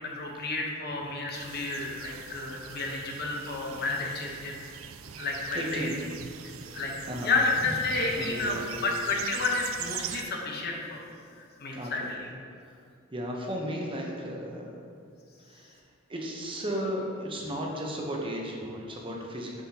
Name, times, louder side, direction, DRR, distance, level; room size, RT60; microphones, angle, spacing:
voice 1, 0.2-4.6 5.2-5.9 6.7-6.9 7.2-8.6 8.8-11.0 11.4-12.0, left 3 dB, 50° left, 0 dB, 0.9 m, -31 dB
sound 1, 1.3-10.2, right 9 dB, 80° right, 0.4 m, -42 dB
voice 2, 5.5-5.9 6.4-6.8 7.1-7.3 8.1-8.8 11.7-12.1 12.6-12.9 13.1-14.8 15.4-19.6, equal, 25° right, -1 dB, 0.8 m, -35 dB
7.4 x 6.4 x 2.8 m, 2.3 s
head